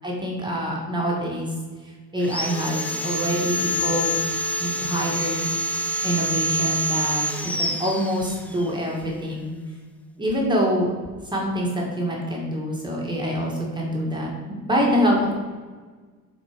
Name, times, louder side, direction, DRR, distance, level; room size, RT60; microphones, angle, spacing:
voice 1, 0.0-1.5 1.8-4.2 4.6-5.4 6.0-9.6 10.2-10.9 11.3-15.3, equal, 15° right, -3 dB, 1.7 m, -25 dB
Sawing, 2.2-8.7, left 1 dB, 5° left, 0.6 m, -27 dB
7.5 x 4.4 x 5.0 m, 1.4 s
cardioid pair, 135°, 34 cm